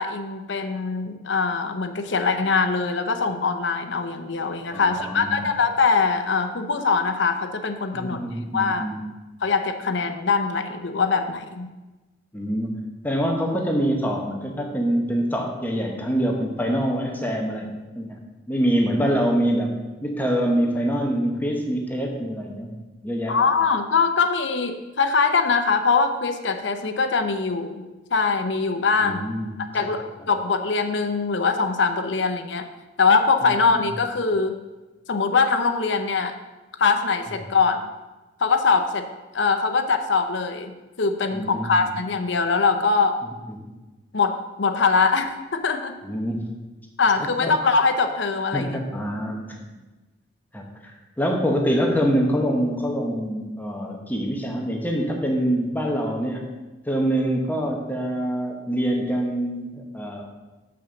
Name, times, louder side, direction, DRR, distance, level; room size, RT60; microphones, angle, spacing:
voice 1, 0.0-8.2 8.5-8.9 9.4-11.7 23.3-29.3 29.7-32.7 33.0-34.5 35.1-36.3 36.8-37.9 38.4-39.1 39.3-43.2 44.1-46.0 47.0-48.8, left 4 dB, 70° left, 6 dB, 0.7 m, -22 dB
voice 2, 4.7-5.5 7.9-9.0 12.3-12.7 13.0-18.2 18.5-19.7 20.0-22.8 23.0-23.3 29.0-29.9 41.3-41.8 43.5-43.6 46.0-46.5 47.4-47.5 48.5-49.6 50.5-56.4 56.9-60.2, equal, 10° left, 1 dB, 1.0 m, -25 dB
7.1 x 6.1 x 6.2 m, 1.1 s
head